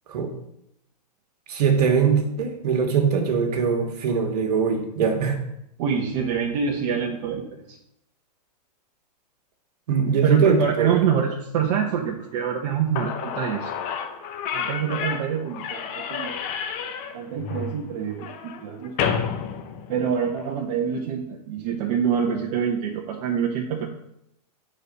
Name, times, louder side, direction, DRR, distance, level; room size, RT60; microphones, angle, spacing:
voice 1, 1.5-5.4 9.9-11.0 14.8-14.9, right 6 dB, 65° right, 4 dB, 1.8 m, -21 dB
voice 2, 5.8-7.8 10.2-13.7 14.5-16.3 17.1-18.9 19.9-23.9, right 7 dB, 50° right, 0 dB, 1.1 m, -26 dB
Slam / Squeak, 12.6-12.7 12.9-20.4, left 7 dB, 35° left, 1.0 m, -30 dB
7.9 x 4.3 x 5.3 m, 0.77 s
hypercardioid pair, 130°, 21 cm